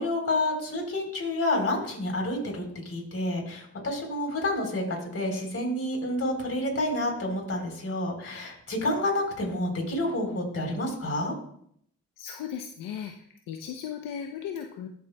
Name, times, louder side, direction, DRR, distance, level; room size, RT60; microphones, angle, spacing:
voice 1, 0.0-11.3, left 1 dB, 45° left, 1 dB, 3.8 m, -29 dB
voice 2, 12.2-13.1 13.5-14.9, left 8 dB, 75° left, 4 dB, 0.7 m, -36 dB
13.5 x 7.2 x 2.3 m, 0.66 s
supercardioid pair, 65°, 33 cm